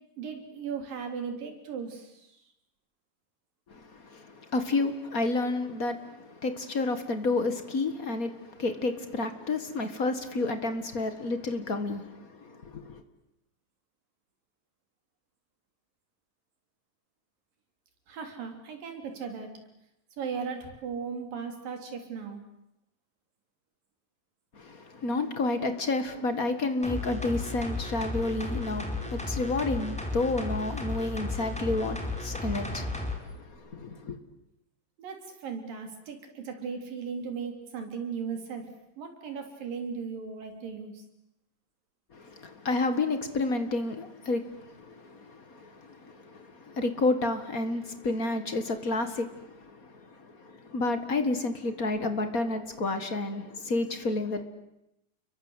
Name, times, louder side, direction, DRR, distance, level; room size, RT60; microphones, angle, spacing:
voice 1, 0.2-2.3 18.1-19.5 20.2-22.4 35.0-38.7 39.0-41.0, right 6 dB, 85° right, 5.2 m, -37 dB
voice 2, 3.7-13.0 24.6-34.2 42.1-49.9 50.2-54.4, left 2 dB, 35° left, 1.5 m, -30 dB
sound 1, 26.8-33.2 33.5-33.6, left 2 dB, ahead, 4.2 m, -34 dB
30.0 x 23.0 x 8.2 m
omnidirectional pair, 3.9 m